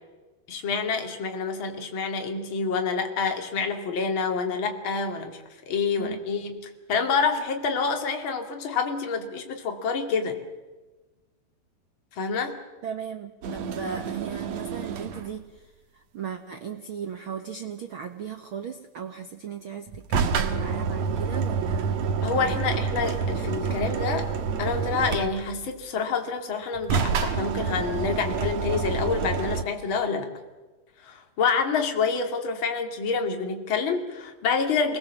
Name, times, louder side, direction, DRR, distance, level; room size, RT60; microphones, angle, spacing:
voice 1, 0.5-5.4 5.7-10.4 12.1-12.6 22.2-24.3 24.6-30.3 31.0-35.0, left 5 dB, 35° left, 4 dB, 2.9 m, -27 dB
voice 2, 12.8-22.6, right 7 dB, 75° right, 6 dB, 1.2 m, -37 dB
sound 1, 13.4-15.4 19.9-25.7 26.7-29.6, right 5 dB, 55° right, 2.3 m, -28 dB
28.5 x 20.5 x 7.4 m, 1.2 s
omnidirectional pair, 4.2 m